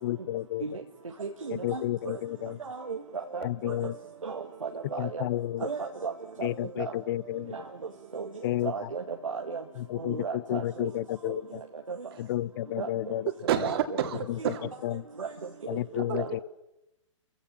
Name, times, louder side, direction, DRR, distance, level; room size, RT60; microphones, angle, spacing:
voice 1, 0.0-0.7 1.5-2.6 3.4-3.9 5.0-5.7 6.4-7.5 8.4-8.9 9.8-11.6 12.2-13.3 14.5-14.6 14.8-15.0 15.7-16.4, left 14 dB, 45° left, 22 dB, 0.7 m, -31 dB
voice 2, 1.2-2.2 2.6-3.8 4.2-5.3 5.6-6.1 6.4-6.5 6.8-6.9 7.5-7.6 8.1-8.3 8.6-9.6 10.0-10.9 11.3-11.4 11.9-12.1 12.8-12.9 13.6-13.8 14.5-14.6 15.2-15.3 15.7-15.8 16.1-16.3, right 5 dB, 85° right, 3 dB, 2.0 m, -35 dB
voice 3, 13.3-14.7 15.9-16.2, right 9 dB, 50° right, 7 dB, 3.0 m, -30 dB
30.0 x 15.5 x 7.4 m, 0.90 s
hypercardioid pair, 125°, 16 cm